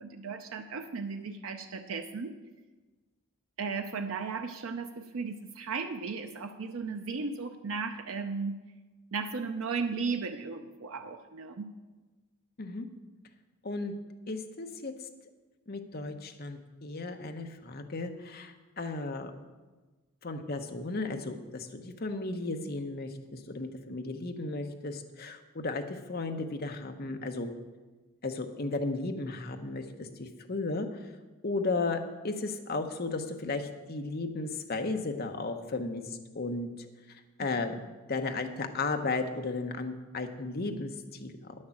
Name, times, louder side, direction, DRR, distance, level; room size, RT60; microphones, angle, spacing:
voice 1, 0.0-2.3 3.6-8.6 9.1-11.7, right 4 dB, 65° right, 7 dB, 0.5 m, -35 dB
voice 2, 14.3-14.9 15.7-19.3 20.2-27.5 28.2-30.9 31.4-36.0 36.3-36.9 37.4-41.5, left 3 dB, 45° left, 5 dB, 0.8 m, -35 dB
9.7 x 6.5 x 7.2 m, 1.2 s
head